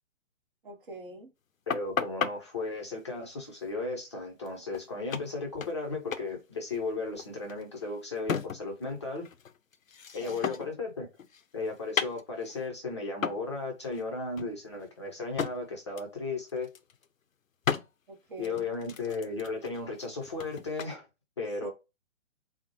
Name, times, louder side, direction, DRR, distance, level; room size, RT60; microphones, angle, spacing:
voice 1, 0.6-1.3 10.1-10.5 18.1-18.7 21.6-21.7, right 2 dB, 40° right, 0.9 m, -45 dB
sound 1, 1.7-2.3 4.5-4.6 4.7-4.9 5.1-5.9 6.1-6.3 6.6-8.8 9.2-10.8 11.2-12.6 13.2-13.5 13.8-14.0 14.4-15.6 16.0-16.2 16.5-17.1 17.6-17.9 18.4-20.9, left 7 dB, 85° left, 0.5 m, -35 dB
voice 2, 1.7-9.3 10.1-11.1 11.5-16.7 18.4-21.0 21.4-21.7, left 3 dB, 20° left, 0.5 m, -35 dB
4.2 x 2.0 x 2.8 m
figure-of-eight pair, 135°, 40 cm